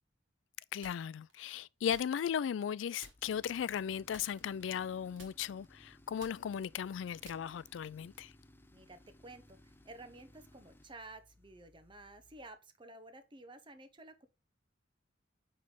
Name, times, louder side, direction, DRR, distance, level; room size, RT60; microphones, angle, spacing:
voice 1, 0.7-8.3, left 8 dB, 70° left, 0.3 m, -37 dB
sound 1, 0.8-1.3 1.9-2.7 3.0-3.5 4.1-4.9 5.2-7.9, right 4 dB, 75° right, 1.6 m, -58 dB
Tools, 3.1-12.6, left 1 dB, 10° left, 0.5 m, -62 dB
voice 2, 8.7-14.3, right 2 dB, 25° right, 0.8 m, -53 dB
8.6 x 3.3 x 3.7 m
head